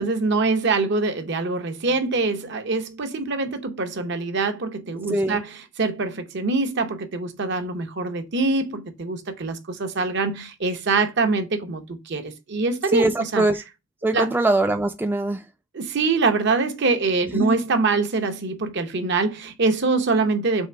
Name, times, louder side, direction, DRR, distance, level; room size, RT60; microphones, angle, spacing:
voice 1, 0.0-13.4 14.1-14.3 15.7-20.7, right 3 dB, 60° right, 0.7 m, -24 dB
voice 2, 5.1-5.4 12.9-13.6 14.0-15.4 17.3-17.5, right 2 dB, 10° right, 0.3 m, -22 dB
3.6 x 3.4 x 4.3 m
head